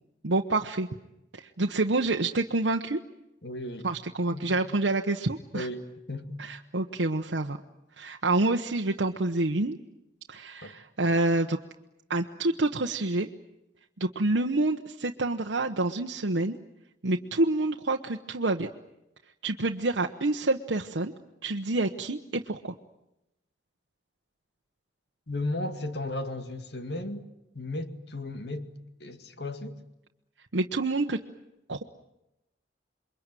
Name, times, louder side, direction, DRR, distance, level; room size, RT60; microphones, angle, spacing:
voice 1, 0.2-0.9 1.3-3.0 3.8-5.7 6.4-7.6 8.0-9.8 10.3-11.6 12.1-13.3 14.0-16.6 17.0-18.7 19.4-21.1 21.4-22.7 30.5-31.2 31.7-31.8, right 2 dB, 85° right, 1.1 m, -27 dB
voice 2, 3.4-3.9 4.3-4.5 5.5-6.4 10.6-10.7 25.3-27.3 27.5-28.7 29.0-29.8, left 2 dB, 65° left, 2.3 m, -35 dB
28.0 x 23.0 x 9.1 m
head